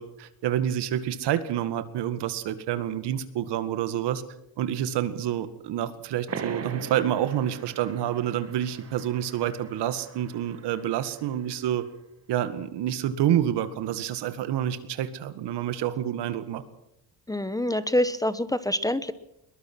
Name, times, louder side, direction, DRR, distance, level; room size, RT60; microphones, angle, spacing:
voice 1, 0.0-4.2 4.6-11.8 12.3-16.6, right 11 dB, 75° right, 11 dB, 2.0 m, -28 dB
sound 1, 6.3-11.5, right 6 dB, 35° right, 1.9 m, -41 dB
voice 2, 17.3-19.1, left 1 dB, 10° left, 14 dB, 1.0 m, -26 dB
22.0 x 20.5 x 6.2 m, 0.81 s
cardioid pair, 115°, 41 cm